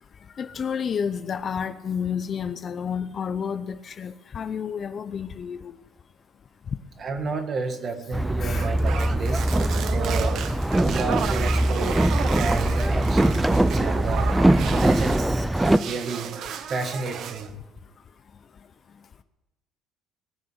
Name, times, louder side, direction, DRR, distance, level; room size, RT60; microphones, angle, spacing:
voice 1, 0.4-5.7 8.4-8.7, left 7 dB, 35° left, 0.6 m, -30 dB
voice 2, 7.0-9.5 9.9-10.5 10.7-12.1 12.4-14.3 14.7-16.3 16.7-17.5, right 4 dB, 35° right, 1.9 m, -31 dB
Boat Water vehicle, 8.1-15.8, right 1 dB, 5° right, 0.4 m, -22 dB
sound 1, 8.5-15.3 15.5-17.5, right 8 dB, 55° right, 1.0 m, -33 dB
19.5 x 6.8 x 8.0 m
cardioid pair, 140°, 0 cm